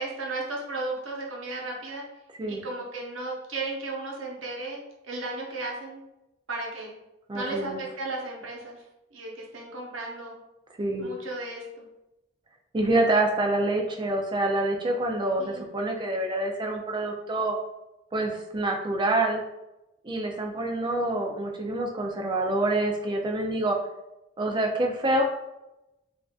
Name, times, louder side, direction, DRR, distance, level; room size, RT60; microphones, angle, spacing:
voice 1, 0.0-2.0 2.5-6.0 6.5-6.9 7.3-8.8 9.1-10.4 11.0-11.8 15.4-15.7, right 2 dB, 90° right, -1 dB, 0.8 m, -35 dB
voice 2, 7.3-7.8 10.8-11.1 12.7-17.5 18.1-19.4 20.0-23.8 24.4-25.2, right 2 dB, 25° right, 2 dB, 0.4 m, -26 dB
3.5 x 2.5 x 2.3 m, 0.94 s
head